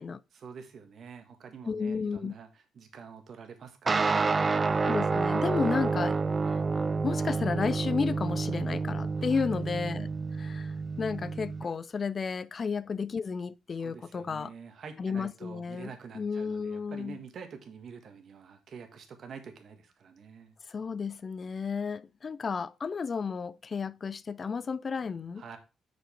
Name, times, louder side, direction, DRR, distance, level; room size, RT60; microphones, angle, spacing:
voice 1, 0.3-4.4 5.4-5.7 9.2-9.5 13.8-20.5 25.4-25.6, right 6 dB, 55° right, 1.5 m, -47 dB
voice 2, 1.7-2.3 4.7-6.2 7.0-14.5 15.0-17.2 20.7-25.4, left 5 dB, 40° left, 0.4 m, -33 dB
sound 1, 3.9-11.7, right 4 dB, 30° right, 0.4 m, -29 dB
6.3 x 5.2 x 4.3 m
cardioid pair, 90°, 0 cm